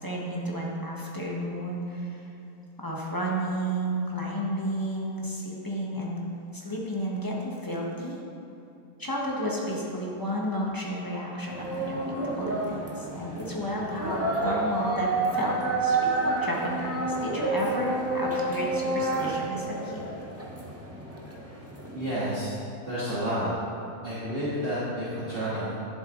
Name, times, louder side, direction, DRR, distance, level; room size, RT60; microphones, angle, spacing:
voice 1, 0.0-2.3 2.8-8.2 9.0-20.0, equal, 15° left, -3 dB, 1.2 m, -32 dB
sound 1, 11.5-22.4, right 2 dB, 10° right, 0.8 m, -30 dB
voice 2, 21.9-22.5 22.9-23.5 24.0-25.7, equal, 35° right, -12 dB, 2.1 m, -30 dB
11.0 x 7.2 x 3.9 m, 2.8 s
omnidirectional pair, 1.7 m